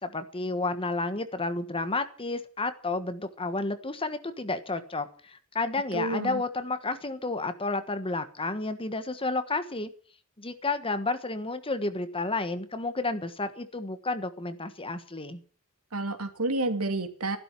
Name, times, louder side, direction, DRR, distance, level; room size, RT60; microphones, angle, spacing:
voice 1, 0.0-5.1 5.5-9.9 10.4-15.4, left 3 dB, 25° left, 10 dB, 1.4 m, -31 dB
voice 2, 5.9-6.4 15.9-17.4, right 2 dB, 75° right, 7 dB, 2.5 m, -29 dB
14.0 x 12.0 x 7.6 m, 0.42 s
head